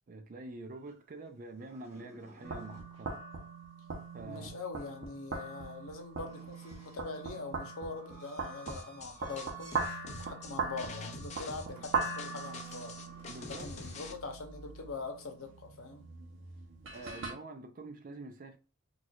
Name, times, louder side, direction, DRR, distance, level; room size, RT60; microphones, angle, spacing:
voice 1, 0.1-3.2 4.1-4.5 13.3-13.7 14.0-14.1 16.9-18.6, right 2 dB, 40° right, 0.4 m, -46 dB
sound 1, 0.6-3.0 6.2-10.1 10.5-10.7 11.7-14.3 16.8-17.2, right 3 dB, 15° right, 1.2 m, -56 dB
sound 2, 2.4-17.3, right 4 dB, 65° right, 0.7 m, -40 dB
voice 2, 4.2-9.8 10.2-13.0 13.5-16.1, left 3 dB, 90° left, 0.8 m, -43 dB
sound 3, 8.7-14.1, left 3 dB, 35° left, 0.4 m, -46 dB
4.3 x 2.3 x 2.3 m
head